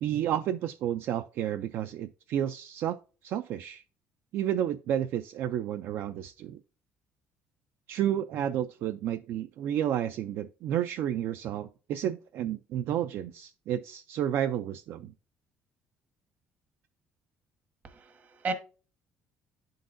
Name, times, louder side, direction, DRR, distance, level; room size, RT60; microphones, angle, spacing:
voice 1, 0.0-3.8 4.3-6.6 7.9-15.1, right 10 dB, 65° right, 0.4 m, -31 dB
voice 2, 17.8-18.5, right 3 dB, 40° right, 1.1 m, -34 dB
11.0 x 3.9 x 2.6 m
cardioid pair, 135°, 4 cm